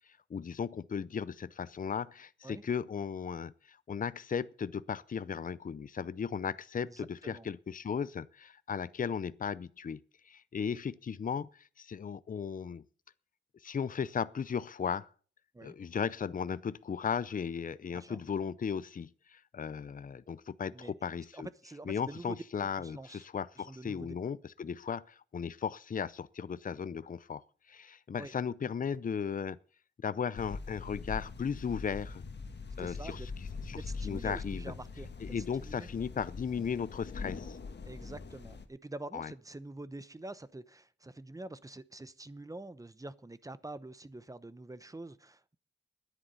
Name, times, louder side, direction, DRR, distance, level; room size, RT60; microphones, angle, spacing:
voice 1, 0.3-10.0 10.3-12.8 13.6-15.1 15.6-21.5 21.9-27.4 27.7-29.6 30.0-32.2 32.8-33.2 33.7-33.8 34.0-34.7 35.2-37.6 39.1-39.3, left 6 dB, 45° left, 0.5 m, -36 dB
voice 2, 6.8-7.5 15.5-15.7 17.9-18.2 20.7-22.4 22.8-23.3 23.6-24.1 28.2-28.3 32.8-33.3 33.7-35.9 37.8-45.6, right 2 dB, 20° right, 0.8 m, -46 dB
sound 1, 30.3-38.6, left 4 dB, 70° left, 1.5 m, -42 dB
10.5 x 9.6 x 8.0 m
wide cardioid pair, 100°, 19 cm